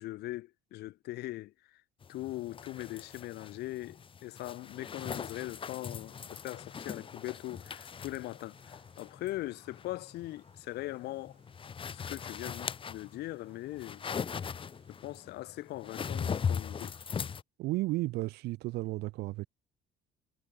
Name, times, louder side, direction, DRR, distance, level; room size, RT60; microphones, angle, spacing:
voice 1, 0.0-1.8 2.1-11.4 11.9-14.0 14.9-17.0, left 17 dB, 75° left, 0.9 m, -41 dB
sound 1, 2.0-17.4, left 6 dB, 30° left, 0.9 m, -40 dB
sound 2, 4.7-15.3, right 7 dB, 40° right, 4.8 m, -70 dB
voice 2, 17.6-19.5, right 19 dB, 80° right, 0.5 m, -33 dB
cardioid pair, 110°, 17 cm